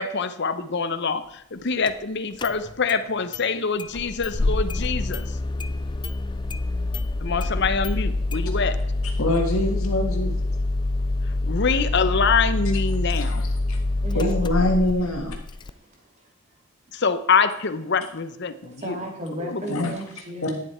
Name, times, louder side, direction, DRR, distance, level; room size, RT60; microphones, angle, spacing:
voice 1, 0.0-5.3 7.2-8.8 11.4-13.5 16.9-19.0 19.4-20.0, left 5 dB, 50° left, 11 dB, 0.8 m, -25 dB
Engine starting, 1.9-2.0 2.4-3.0 3.3-3.4 3.8-15.7, left 2 dB, 20° left, 0.4 m, -26 dB
voice 2, 9.2-10.3 13.1-13.8 14.1-15.3 19.7-19.9 20.4-20.5, left 1 dB, 80° left, 1 dB, 1.6 m, -24 dB
voice 3, 14.0-15.3 15.7-16.3 18.6-20.6, equal, 30° right, 1 dB, 2.4 m, -35 dB
11.5 x 9.5 x 4.3 m, 0.76 s
head